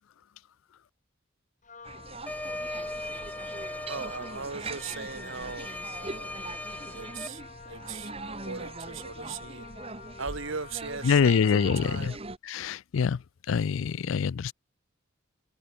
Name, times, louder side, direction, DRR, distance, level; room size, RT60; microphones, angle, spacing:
Wind instrument woodwind instrument, 1.6-12.2, left 5 dB, 35° left, 3.8 m, -48 dB
sound 1, 1.8-12.4, right 2 dB, 30° right, 1.6 m, -42 dB
sound 2, 2.3-7.3, left 1 dB, 5° left, 0.9 m, -39 dB
voice 1, 3.9-5.7 6.0-6.4 6.9-9.7 10.2-12.2, right 5 dB, 70° right, 1.4 m, -39 dB
voice 2, 11.0-12.2 12.4-13.2 13.5-14.5, left 6 dB, 70° left, 0.4 m, -25 dB
head